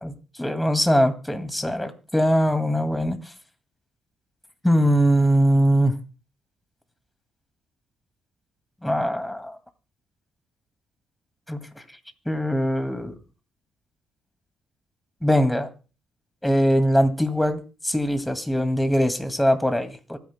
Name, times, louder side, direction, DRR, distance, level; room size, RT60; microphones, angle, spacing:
voice 1, 0.0-3.2 4.6-5.9 8.8-9.6 11.5-11.6 12.3-13.1 15.2-15.7 16.4-20.2, equal, 5° left, 8 dB, 2.2 m, -22 dB
25.5 x 9.8 x 2.2 m, 0.34 s
cardioid pair, 90°, 0 cm